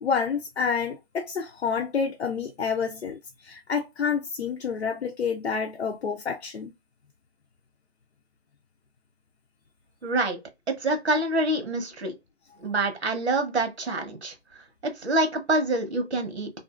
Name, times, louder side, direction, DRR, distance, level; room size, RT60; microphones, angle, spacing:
voice 1, 0.0-6.7, left 6 dB, 85° left, 0.6 m, -28 dB
voice 2, 10.0-10.4 10.7-12.1 12.6-14.3 14.8-16.5, right 2 dB, 85° right, 1.1 m, -26 dB
2.6 x 2.5 x 2.4 m
hypercardioid pair, 155°, 32 cm